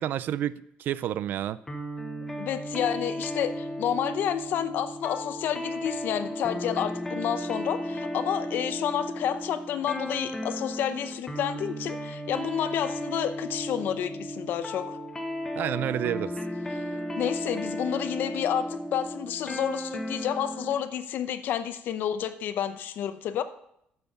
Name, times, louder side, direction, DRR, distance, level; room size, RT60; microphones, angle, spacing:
voice 1, 0.0-1.6 15.5-16.3, right 11 dB, 60° right, 17 dB, 0.4 m, -29 dB
sound 1, 1.7-20.8, equal, 10° left, 1.3 m, -34 dB
voice 2, 2.4-15.0 16.7-16.8 17.2-23.4, left 9 dB, 60° left, 11 dB, 0.7 m, -30 dB
9.9 x 6.8 x 5.2 m, 0.74 s
cardioid pair, 140°, 4 cm